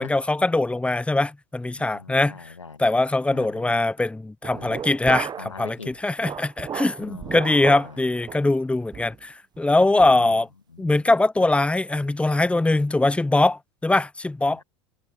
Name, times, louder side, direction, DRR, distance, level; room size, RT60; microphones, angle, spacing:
voice 1, 0.0-2.3 2.8-5.3 5.6-5.8 6.0-10.5 10.8-14.6, left 2 dB, 10° left, 0.8 m, -22 dB
voice 2, 1.8-2.9 3.3-3.8 4.5-4.9 5.4-6.0 7.0-8.4 10.0-10.4 10.7-11.0 14.5-14.6, left 4 dB, 90° left, 2.1 m, -43 dB
sound 1, 4.4-5.6 5.9-7.9 8.3-8.5 8.9-9.2 9.6-9.7 10.0-10.2, right 8 dB, 30° right, 1.1 m, -34 dB
figure-of-eight pair, 75°, 15 cm